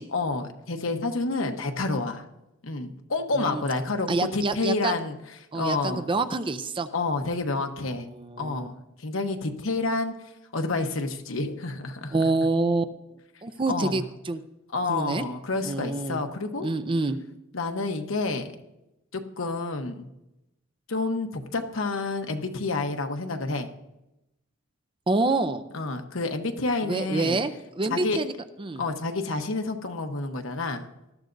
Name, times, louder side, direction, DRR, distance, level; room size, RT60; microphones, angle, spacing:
voice 1, 0.1-2.2 2.6-6.1 6.9-8.1 8.4-10.1 10.5-12.3 13.7-14.0 14.7-16.7 17.5-18.5 19.1-20.1 20.9-23.7 25.7-27.4 27.9-28.2 28.8-30.9, left 3 dB, 70° left, 5 dB, 1.1 m, -29 dB
voice 2, 4.1-4.9 5.5-6.9 8.1-8.7 12.1-12.8 13.4-14.4 14.9-15.2 15.6-16.2 16.6-17.2 25.1-25.6 26.8-28.3 28.6-28.8, right 3 dB, 25° right, 10 dB, 0.5 m, -27 dB
19.0 x 13.0 x 2.6 m, 0.93 s
head